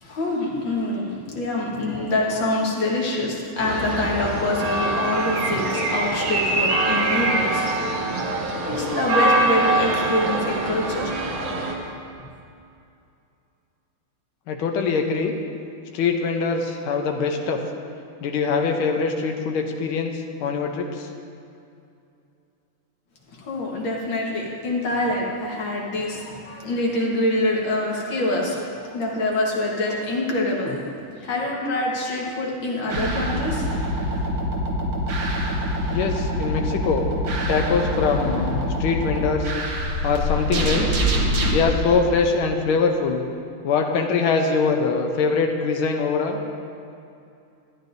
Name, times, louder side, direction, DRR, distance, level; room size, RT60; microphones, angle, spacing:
voice 1, 0.0-7.7 8.7-11.1 23.4-30.8 31.1-33.7, left 1 dB, 65° left, -2 dB, 2.1 m, -25 dB
sound 1, 3.6-11.7, right 2 dB, 55° right, 1.2 m, -24 dB
voice 2, 14.5-15.3 15.9-17.6 18.2-20.1 20.4-20.9 35.9-37.1 37.5-39.5 40.0-41.0 41.5-43.2 43.6-46.4, left 5 dB, 80° left, 3 dB, 1.6 m, -23 dB
sound 2, 32.9-41.6, equal, 80° right, 2.0 m, -25 dB
12.5 x 10.0 x 2.6 m, 2.6 s
omnidirectional pair, 2.3 m